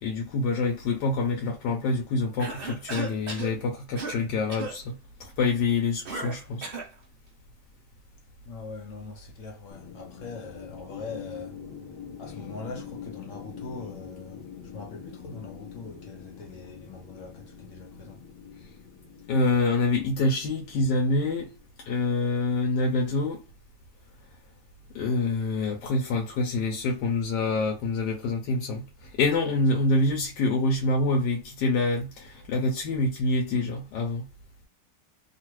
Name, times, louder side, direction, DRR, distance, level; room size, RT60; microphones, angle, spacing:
voice 1, 0.0-6.7 19.3-21.5 21.8-23.4 24.9-34.2, left 3 dB, 85° left, 1.2 m, -26 dB
Cough, 2.4-3.5 4.0-4.2 4.5-4.8 6.1-6.9, right 3 dB, 50° right, 0.7 m, -35 dB
voice 2, 8.5-11.5 12.2-18.2, left 4 dB, 65° left, 0.8 m, -42 dB
sound 1, 9.7-21.8, left 7 dB, 40° left, 0.3 m, -45 dB
3.0 x 2.4 x 3.0 m
omnidirectional pair, 1.9 m